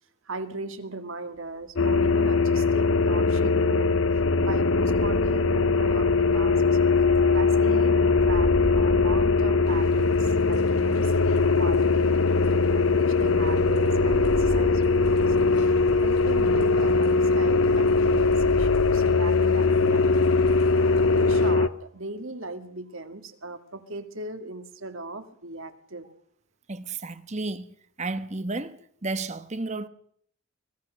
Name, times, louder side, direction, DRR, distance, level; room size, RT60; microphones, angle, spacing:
voice 1, 0.3-4.0 4.4-6.6 7.3-20.7 21.1-26.1, right 2 dB, 60° right, 2.1 m, -37 dB
sound 1, 1.7-20.8, equal, 15° right, 2.3 m, -39 dB
sound 2, 1.8-21.7, left 4 dB, 60° left, 0.8 m, -21 dB
sound 3, 9.6-21.5, left 1 dB, 85° left, 7.2 m, -46 dB
voice 2, 26.7-29.9, right 3 dB, 30° right, 1.1 m, -33 dB
24.5 x 19.0 x 6.4 m
head